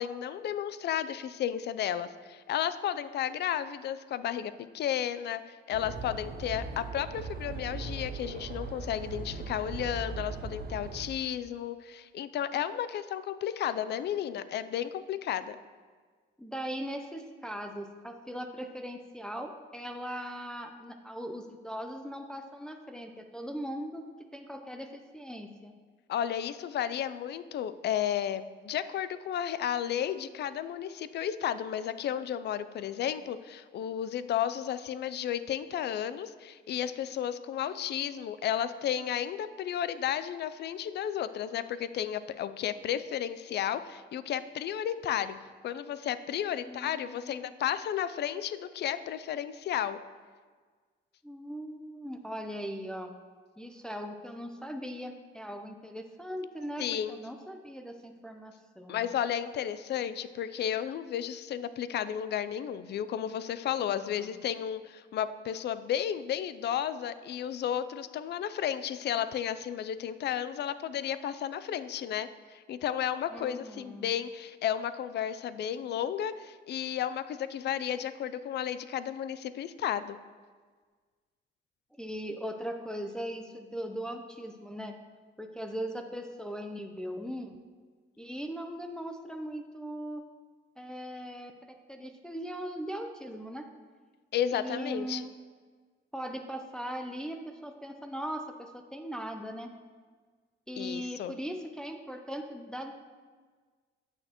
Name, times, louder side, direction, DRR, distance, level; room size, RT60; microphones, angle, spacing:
voice 1, 0.0-15.6 26.1-45.4 45.6-50.0 56.8-57.2 58.9-80.2 94.3-95.3 100.8-101.4, left 10 dB, 60° left, 14 dB, 0.4 m, -33 dB
sound 1, 5.7-11.1, right 3 dB, 50° right, 0.7 m, -39 dB
voice 2, 16.4-24.1 24.3-25.7 46.6-47.6 51.2-53.1 53.6-59.1 63.9-64.4 73.3-74.1 82.0-84.9 85.4-87.6 88.2-90.2 90.8-93.7 94.5-95.3 96.1-99.7 100.7-102.9, equal, 5° left, 4 dB, 0.5 m, -39 dB
8.8 x 6.5 x 2.9 m, 1.5 s
cardioid pair, 90°, 20 cm